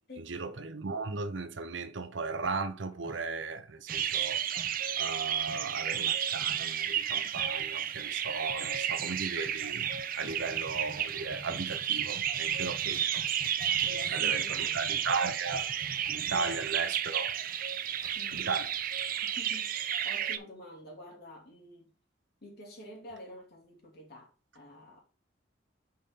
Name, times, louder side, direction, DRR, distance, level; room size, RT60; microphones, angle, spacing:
voice 1, 0.2-9.9 10.2-13.2 14.1-15.7 16.1-17.4 18.3-18.7, right 4 dB, 70° right, 0.8 m, -36 dB
sound 1, 2.4-3.6 3.9-5.8 6.4-6.7 7.0-7.1 7.4-7.7 8.5-19.3, right 1 dB, 20° right, 1.0 m, -49 dB
sound 2, 3.9-20.4, right 9 dB, 45° right, 0.5 m, -32 dB
voice 2, 13.8-14.9 16.3-16.5 18.1-18.5 19.2-21.9 22.4-25.0, left 1 dB, 55° left, 2.6 m, -49 dB
5.7 x 4.3 x 5.3 m
head